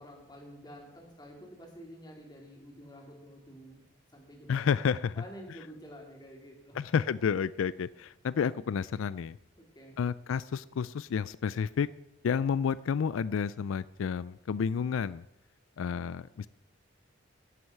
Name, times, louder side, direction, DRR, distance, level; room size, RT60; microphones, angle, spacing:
voice 1, 0.0-3.8 4.1-4.5 5.1-6.8 9.6-10.0, equal, 20° left, 0 dB, 3.3 m, -49 dB
voice 2, 4.5-5.2 6.8-9.4 10.0-11.9 12.2-15.2 15.8-16.5, left 6 dB, 85° left, 18 dB, 0.4 m, -30 dB
12.0 x 7.9 x 9.5 m, 0.88 s
head